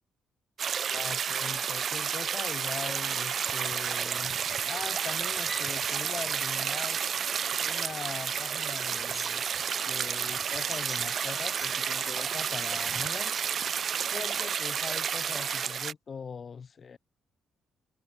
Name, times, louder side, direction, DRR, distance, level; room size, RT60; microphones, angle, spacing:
sound 1, 0.6-15.9, right 7 dB, 55° right, 1.1 m, -31 dB
voice 1, 0.9-4.4 4.6-7.0 7.6-9.4 9.8-13.4 14.1-17.0, left 6 dB, 45° left, 4.5 m, -41 dB
sound 2, 3.3-14.5, equal, ahead, 6.8 m, -48 dB
cardioid pair, 90°, 0 cm